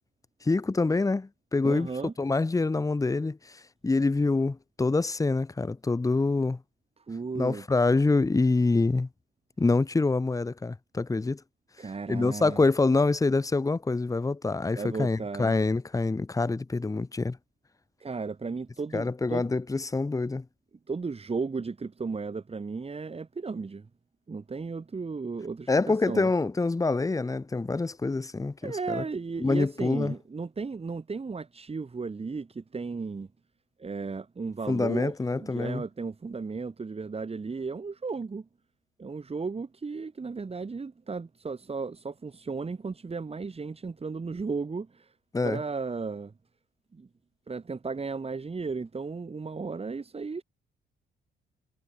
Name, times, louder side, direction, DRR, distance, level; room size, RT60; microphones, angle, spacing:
voice 1, 0.4-1.9 2.2-3.6 3.8-6.6 7.3-9.1 9.6-11.4 12.1-17.4 18.9-20.4 25.7-29.0 29.4-30.1 34.7-35.8 45.3-45.6, left 3 dB, 15° left, 1.2 m, -26 dB
voice 2, 1.6-2.1 7.1-7.6 11.8-12.6 14.7-15.6 18.0-19.5 20.9-23.9 24.3-26.3 28.6-33.3 33.8-38.5 39.0-45.1 45.4-46.3 46.9-47.1 47.5-50.4, right 4 dB, 30° right, 5.5 m, -35 dB
cardioid pair, 90°, 20 cm